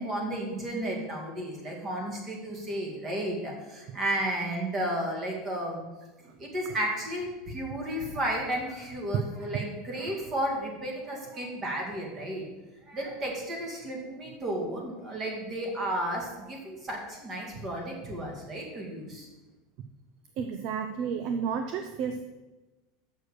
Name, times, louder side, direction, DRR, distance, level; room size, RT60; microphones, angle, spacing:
voice 1, 0.0-5.8 6.4-12.4 12.9-19.3, right 1 dB, 25° right, 0 dB, 2.1 m, -33 dB
voice 2, 20.4-22.2, right 6 dB, 45° right, 7 dB, 0.6 m, -32 dB
6.9 x 6.3 x 6.5 m, 1.2 s
supercardioid pair, 160°, 0 cm